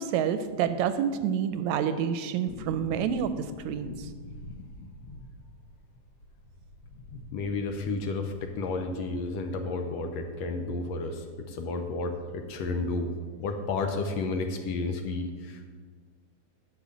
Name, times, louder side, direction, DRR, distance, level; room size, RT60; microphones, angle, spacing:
voice 1, 0.0-4.1, right 8 dB, 80° right, 11 dB, 1.8 m, -28 dB
sound 1, 2.5-11.3 11.6-11.7 11.9-13.0 13.2-13.3, left 2 dB, 90° left, 0.9 m, -46 dB
voice 2, 7.3-13.1 13.4-15.7, left 3 dB, 70° left, 5 dB, 1.8 m, -32 dB
11.0 x 5.5 x 8.3 m, 1.5 s
omnidirectional pair, 3.5 m